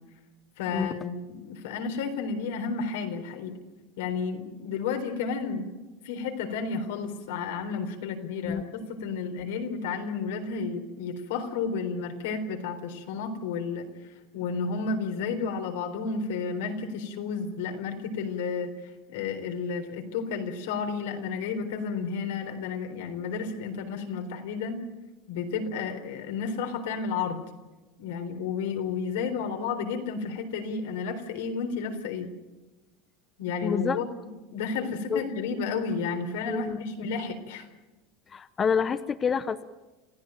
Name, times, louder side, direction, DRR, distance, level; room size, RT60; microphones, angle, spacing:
voice 1, 0.6-3.6 4.0-5.7 6.0-13.9 14.3-18.7 19.1-24.8 25.3-27.4 28.0-32.3 33.4-37.7, left 5 dB, 90° left, 5 dB, 3.9 m, -32 dB
voice 2, 33.6-34.0 35.1-35.2 36.5-36.8 38.3-39.6, left 6 dB, 25° left, 11 dB, 0.9 m, -27 dB
27.5 x 15.5 x 9.1 m, 1.1 s
supercardioid pair, 130°, 0 cm